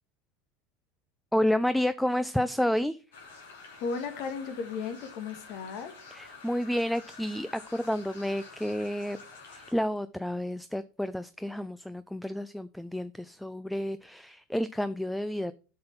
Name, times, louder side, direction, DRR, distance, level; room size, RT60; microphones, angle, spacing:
voice 1, 1.3-3.0 6.1-9.2 9.4-15.5, left 1 dB, 5° left, 0.4 m, -30 dB
sound 1, 3.1-9.7, left 4 dB, 70° left, 2.9 m, -49 dB
voice 2, 3.8-5.9, left 5 dB, 55° left, 2.0 m, -35 dB
8.6 x 5.7 x 5.8 m
hypercardioid pair, 80°, 0 cm